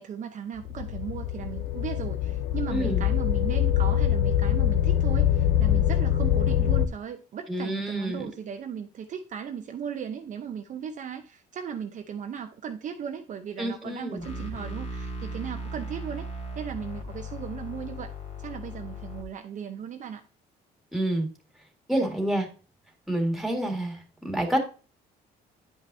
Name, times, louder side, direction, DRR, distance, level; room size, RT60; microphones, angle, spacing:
voice 1, 0.0-16.3 16.6-18.1 18.4-20.2, right 8 dB, 50° right, 0.7 m, -37 dB
sound 1, 0.6-6.8, left 10 dB, 80° left, 0.6 m, -24 dB
voice 2, 2.7-3.0 7.5-8.3 13.6-14.2 20.9-21.3 21.9-22.5 23.1-24.6, right 1 dB, ahead, 1.9 m, -28 dB
sound 2, 14.2-19.2, equal, 40° left, 2.2 m, -37 dB
9.8 x 5.4 x 2.7 m
cardioid pair, 110°, 17 cm